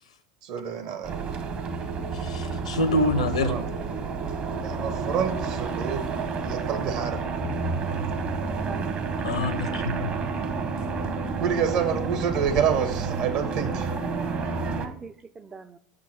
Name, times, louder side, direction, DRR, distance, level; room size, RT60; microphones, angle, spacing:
voice 1, 0.4-1.1 3.1-3.6 4.6-6.1 6.4-7.2 9.7-9.9 11.4-13.9, right 7 dB, 60° right, 7 dB, 1.3 m, -28 dB
sound 1, 1.0-14.9, right 4 dB, 40° right, 1.0 m, -30 dB
voice 2, 2.1-3.6 9.2-10.1, left 1 dB, 90° left, 11 dB, 0.7 m, -26 dB
voice 3, 14.8-15.8, right 5 dB, 20° right, 11 dB, 0.4 m, -45 dB
6.0 x 3.8 x 5.8 m, 0.63 s
hypercardioid pair, 90°, 3 cm